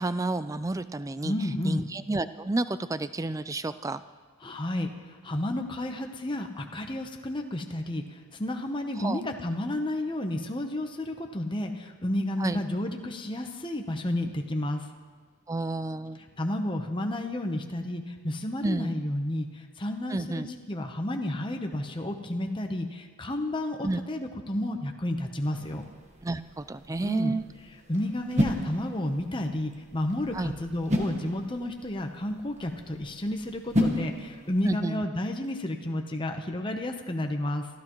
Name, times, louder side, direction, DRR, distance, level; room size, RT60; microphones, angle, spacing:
voice 1, 0.0-1.3 1.6-4.0 9.0-9.2 12.4-12.6 15.5-16.2 18.6-18.9 20.1-20.5 23.8-24.0 26.2-27.4 30.3-30.5 34.6-35.0, right 2 dB, 15° right, 13 dB, 0.3 m, -30 dB
voice 2, 1.2-1.9 4.4-14.9 16.4-25.8 27.0-27.4 27.9-37.7, left 1 dB, 20° left, 4 dB, 0.9 m, -31 dB
sound 1, 25.5-34.8, left 1 dB, 30° right, 1.3 m, -34 dB
25.5 x 13.5 x 3.1 m, 1.5 s
head